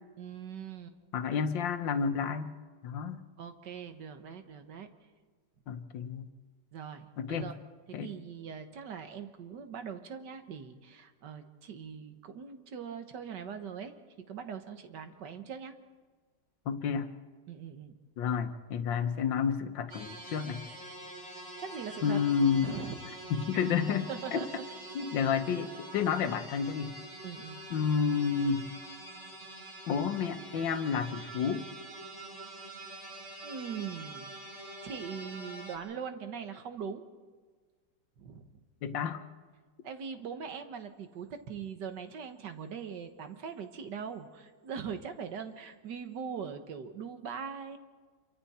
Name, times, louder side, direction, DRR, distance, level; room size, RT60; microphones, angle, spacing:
voice 1, 0.2-1.0 3.4-4.9 6.7-7.5 7.9-13.9 14.3-15.7 17.5-17.9 21.6-22.2 22.6-22.9 23.5-23.7 24.1-24.5 27.2-27.6 33.4-37.0 38.2-38.5 39.8-47.8, right 7 dB, 70° right, 8 dB, 1.9 m, -41 dB
voice 2, 1.1-2.5 2.8-3.2 5.7-6.3 7.2-7.5 7.9-8.1 16.7-17.1 18.2-20.6 22.0-22.7 23.3-24.4 24.9-26.9 27.7-28.7 29.9-31.7 38.8-39.2, left 6 dB, 85° left, 9 dB, 1.7 m, -30 dB
sound 1, 19.9-35.8, right 2 dB, 40° right, 3.4 m, -45 dB
27.0 x 24.0 x 4.3 m, 1.5 s
omnidirectional pair, 2.0 m